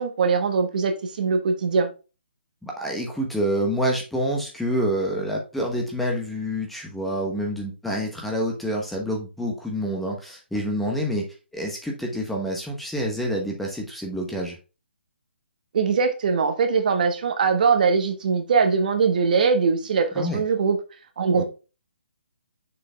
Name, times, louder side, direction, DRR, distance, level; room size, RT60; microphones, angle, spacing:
voice 1, 0.0-1.9 15.7-20.8 21.2-21.4, right 5 dB, 50° right, 1.3 m, -21 dB
voice 2, 2.6-11.2 11.5-14.6 20.1-20.4 21.3-21.4, equal, ahead, 1.0 m, -27 dB
6.5 x 5.1 x 3.3 m
hypercardioid pair, 160°, 6 cm